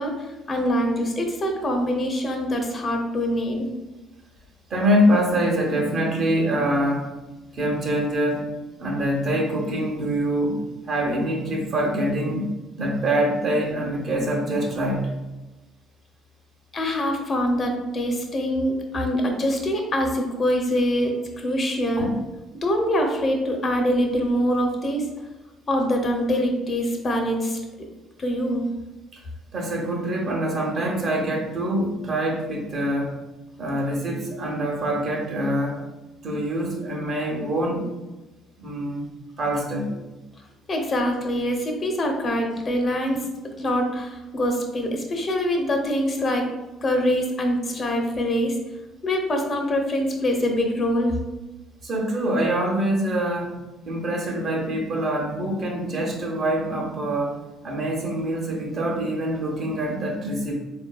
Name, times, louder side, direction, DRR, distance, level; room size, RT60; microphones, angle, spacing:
voice 1, 0.0-3.7 16.7-22.1 22.6-25.0 25.7-27.6 28.2-28.7 40.7-46.5 46.8-48.6 49.0-51.2, equal, 40° left, 2 dB, 0.7 m, -24 dB
voice 2, 4.7-7.1 7.5-8.4 8.8-10.6 10.8-12.5 12.8-15.1 22.0-22.1 29.1-29.2 29.5-33.2 33.6-35.8 36.2-38.0 38.6-39.9 51.8-57.4 57.6-60.5, right 1 dB, 50° right, -1 dB, 0.9 m, -25 dB
3.8 x 2.6 x 2.3 m, 1.1 s
hypercardioid pair, 55°, 0 cm